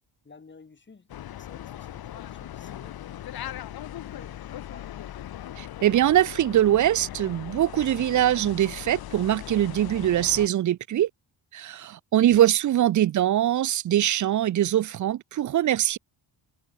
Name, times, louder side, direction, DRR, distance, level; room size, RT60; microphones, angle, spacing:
voice 1, 0.2-1.1 1.4-5.0, left 4 dB, 25° left, 6.6 m, -53 dB
sound 1, 1.1-10.5, left 12 dB, 50° left, 1.0 m, -39 dB
voice 2, 5.6-11.1 11.5-16.0, right 12 dB, 40° right, 0.5 m, -22 dB
cardioid pair, 135°, 45 cm